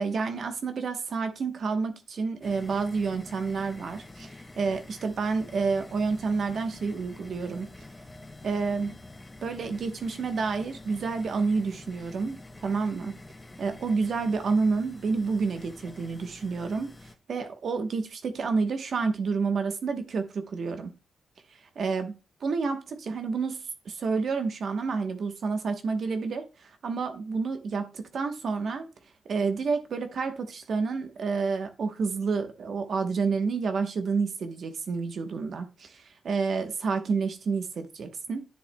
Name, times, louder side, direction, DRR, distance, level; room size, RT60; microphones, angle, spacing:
voice 1, 0.0-7.7 8.4-8.9 9.4-13.2 13.6-16.9 17.3-20.9 21.8-22.8 23.1-23.6 23.8-28.9 29.2-38.5, right 4 dB, 60° right, 1.0 m, -29 dB
sound 1, 2.4-17.2, left 2 dB, 20° left, 0.6 m, -47 dB
10.5 x 7.1 x 2.2 m
cardioid pair, 110°, 0 cm